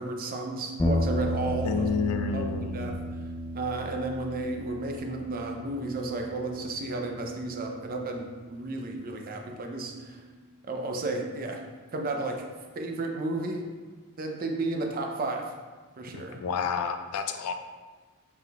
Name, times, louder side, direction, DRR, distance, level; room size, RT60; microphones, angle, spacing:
voice 1, 0.0-1.9 2.3-3.0 3.5-10.2 10.6-11.6 11.9-12.5 12.8-13.7 14.2-15.5 16.0-16.4, right 2 dB, 40° right, 2 dB, 0.5 m, -33 dB
sound 1, 0.8-9.1, equal, 15° left, 0.3 m, -33 dB
voice 2, 1.6-3.0 16.1-17.5, left 6 dB, 90° left, 7 dB, 0.4 m, -30 dB
5.7 x 3.5 x 2.3 m, 1.4 s
head